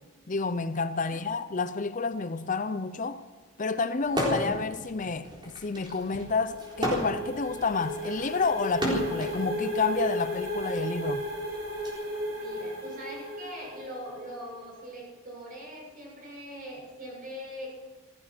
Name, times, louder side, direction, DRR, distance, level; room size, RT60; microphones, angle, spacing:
voice 1, 0.3-3.2 3.6-5.3 5.6-11.3, left 4 dB, 40° left, 0.6 m, -29 dB
sound 1, 4.1-4.6 5.0-9.4 10.3-11.9, equal, 25° right, 3.9 m, -32 dB
sound 2, 5.9-14.5, equal, 75° right, 6.6 m, -35 dB
voice 2, 12.2-17.7, equal, 45° right, 7.0 m, -42 dB
16.0 x 14.5 x 6.0 m
head